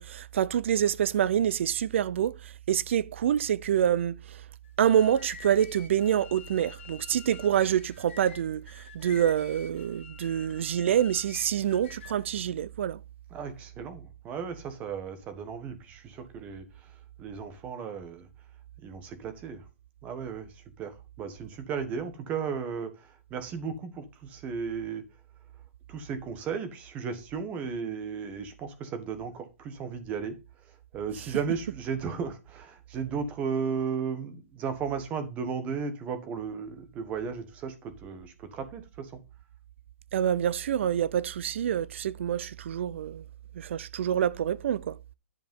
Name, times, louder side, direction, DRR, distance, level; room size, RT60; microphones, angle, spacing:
voice 1, 0.0-2.3 2.7-4.2 4.8-8.6 8.9-13.0 40.1-43.2 43.6-45.0, right 10 dB, 55° right, 0.6 m, -26 dB
sound 1, 4.6-12.3, left 7 dB, 55° left, 2.2 m, -49 dB
voice 2, 13.3-18.3 18.8-19.6 20.0-25.0 25.9-39.2, right 6 dB, 20° right, 1.4 m, -35 dB
10.5 x 5.3 x 5.4 m
hypercardioid pair, 165°, 8 cm